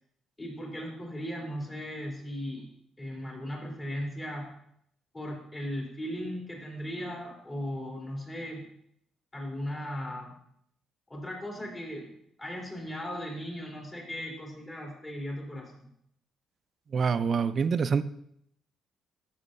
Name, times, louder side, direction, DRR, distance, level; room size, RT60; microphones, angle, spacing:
voice 1, 0.4-2.7 3.0-4.5 5.1-8.7 9.3-10.4 11.1-12.1 12.4-15.9, equal, 20° left, -2 dB, 3.5 m, -37 dB
voice 2, 16.9-18.0, right 5 dB, 40° right, 14 dB, 0.4 m, -26 dB
13.0 x 7.3 x 2.7 m, 0.72 s
cardioid pair, 110°, 0 cm